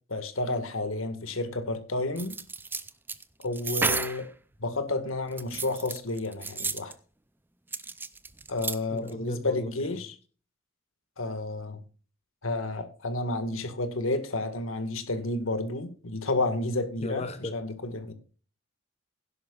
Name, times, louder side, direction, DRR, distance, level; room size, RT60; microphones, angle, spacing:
voice 1, 0.1-2.4 3.4-4.3 4.6-6.9 8.5-10.2 11.2-11.8 12.4-18.1, left 2 dB, 85° left, 2.0 m, -31 dB
sound 1, 2.2-4.3 5.3-6.9 7.7-8.8 9.1-9.2, right 4 dB, 10° right, 0.5 m, -32 dB
voice 2, 8.9-10.0 17.0-17.6, left 2 dB, 30° left, 0.7 m, -37 dB
16.5 x 11.0 x 2.5 m
head